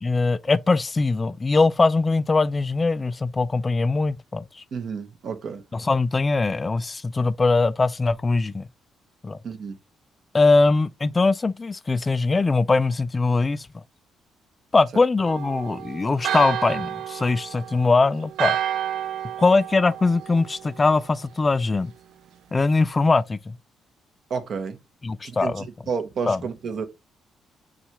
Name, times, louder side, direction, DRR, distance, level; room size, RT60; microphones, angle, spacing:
voice 1, 0.0-4.6 5.7-8.7 9.2-9.4 10.3-13.7 14.7-18.6 19.4-21.9 22.5-23.6 25.0-25.7 26.3-26.4, left 3 dB, 25° left, 0.3 m, -21 dB
voice 2, 4.7-5.6 9.4-9.8 24.3-24.8 25.2-26.8, right 5 dB, 55° right, 0.9 m, -31 dB
Church bell, 15.3-21.0, right 10 dB, 75° right, 0.3 m, -31 dB
7.0 x 2.4 x 3.0 m
cardioid pair, 90°, 0 cm